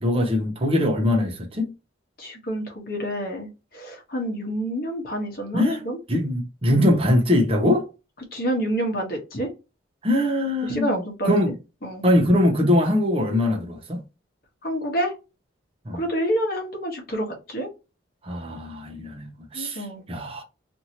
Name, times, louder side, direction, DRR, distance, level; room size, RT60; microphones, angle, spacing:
voice 1, 0.0-1.7 5.5-7.9 10.0-11.5 12.0-14.0 15.8-16.0 18.2-20.4, left 1 dB, 30° right, 0.7 m, -22 dB
voice 2, 2.2-6.0 8.3-9.5 10.7-11.3 11.8-12.0 14.6-15.1 15.9-17.7 19.5-20.0, equal, 50° left, 1.0 m, -28 dB
2.8 x 2.6 x 2.8 m
head